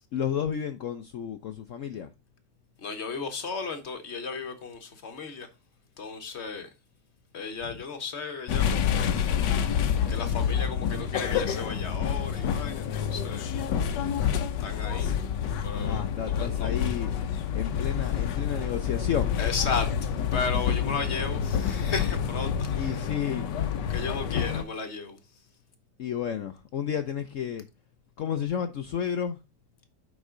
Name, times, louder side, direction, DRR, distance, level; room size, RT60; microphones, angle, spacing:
voice 1, 0.1-2.1 15.9-17.1 17.5-19.3 22.8-23.5 26.0-27.6 28.2-29.4, left 8 dB, 65° left, 0.8 m, -31 dB
voice 2, 2.8-5.5 6.0-6.7 7.3-9.0 10.1-13.4 14.6-15.1 15.6-16.7 19.4-19.9 20.3-23.1 23.9-25.2, left 5 dB, 45° left, 1.2 m, -34 dB
sound 1, 8.5-24.6, left 8 dB, 85° left, 1.4 m, -28 dB
8.1 x 5.4 x 3.7 m
omnidirectional pair, 1.8 m